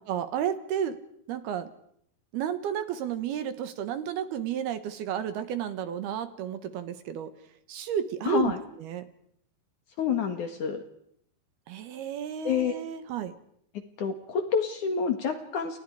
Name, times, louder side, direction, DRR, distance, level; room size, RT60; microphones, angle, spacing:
voice 1, 0.1-1.0 1.3-1.7 2.3-7.3 7.7-8.5 8.8-9.1 11.7-13.4, right 9 dB, 70° right, 11 dB, 3.0 m, -32 dB
voice 2, 8.2-8.6 10.0-10.8 12.4-12.8 14.0-15.8, left 7 dB, 55° left, 7 dB, 2.7 m, -28 dB
29.5 x 29.0 x 4.9 m, 0.69 s
omnidirectional pair, 5.1 m